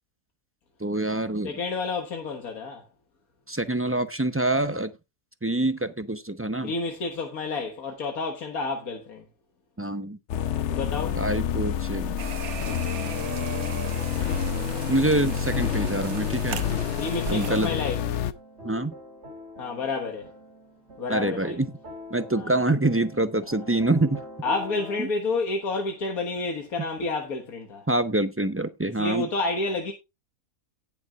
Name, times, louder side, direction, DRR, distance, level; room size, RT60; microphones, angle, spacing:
voice 1, 0.8-1.6 3.5-4.9 5.4-6.7 9.8-10.2 11.1-12.2 14.9-16.7 17.3-17.7 18.6-18.9 21.1-21.7 22.1-24.2 25.0-25.1 27.9-29.3, right 2 dB, 20° right, 0.4 m, -26 dB
voice 2, 1.4-2.9 6.6-9.3 10.7-11.2 17.0-18.0 19.6-20.3 21.0-21.6 22.3-22.6 24.4-27.8 29.0-29.9, left 3 dB, 90° left, 1.9 m, -30 dB
sound 1, 10.3-18.3, left 8 dB, 60° left, 0.9 m, -28 dB
sound 2, 12.2-17.7, right 7 dB, 85° right, 1.5 m, -37 dB
sound 3, 18.3-25.0, left 1 dB, 50° right, 2.8 m, -44 dB
18.0 x 7.0 x 2.4 m
omnidirectional pair, 1.5 m